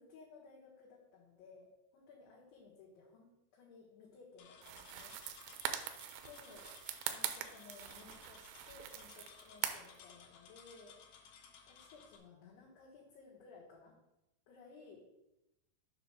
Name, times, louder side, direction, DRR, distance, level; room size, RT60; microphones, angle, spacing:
voice 1, 0.0-5.1 6.2-6.7 7.0-14.0 14.5-15.0, left 4 dB, 70° left, -5 dB, 3.6 m, -58 dB
sound 1, 4.4-12.2, left 6 dB, 90° left, 2.1 m, -59 dB
sound 2, 4.6-10.0, right 10 dB, 80° right, 2.8 m, -43 dB
7.4 x 5.0 x 6.1 m, 0.92 s
omnidirectional pair, 5.8 m